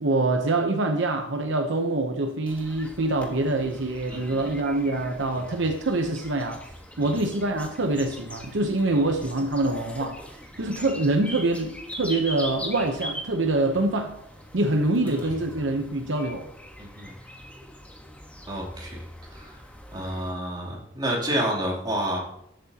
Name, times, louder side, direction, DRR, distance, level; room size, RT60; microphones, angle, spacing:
voice 1, 0.0-6.6 7.0-10.2 10.6-14.2 14.5-16.5, right 2 dB, 70° right, 0.9 m, -25 dB
sound 1, 2.5-20.3, equal, 5° left, 1.3 m, -42 dB
voice 2, 4.1-4.5 5.5-5.6 7.0-7.1 10.5-10.6 15.0-15.1 16.8-17.1 18.5-19.0 19.3-19.6 19.9-22.2, right 1 dB, 25° right, 3.0 m, -30 dB
13.0 x 8.5 x 2.9 m
head